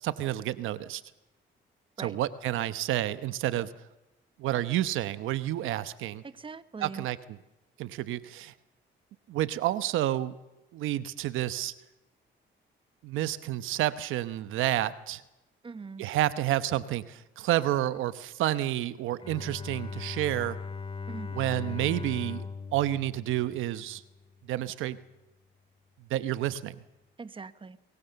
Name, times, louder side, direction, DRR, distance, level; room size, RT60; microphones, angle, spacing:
voice 1, 0.0-1.0 2.0-3.7 4.4-6.2 6.8-7.2 7.8-8.5 9.3-10.3 10.7-11.7 13.0-15.2 16.0-20.6 21.3-22.4 22.7-24.0 24.5-25.0 26.1-26.7, right 14 dB, 90° right, 14 dB, 0.9 m, -29 dB
voice 2, 6.2-7.1 15.6-16.1 21.1-21.3 27.2-27.8, right 4 dB, 25° right, 13 dB, 1.1 m, -41 dB
Bowed string instrument, 19.2-24.2, left 4 dB, 25° left, 2.0 m, -39 dB
22.5 x 22.0 x 6.9 m, 0.99 s
cardioid pair, 90°, 20 cm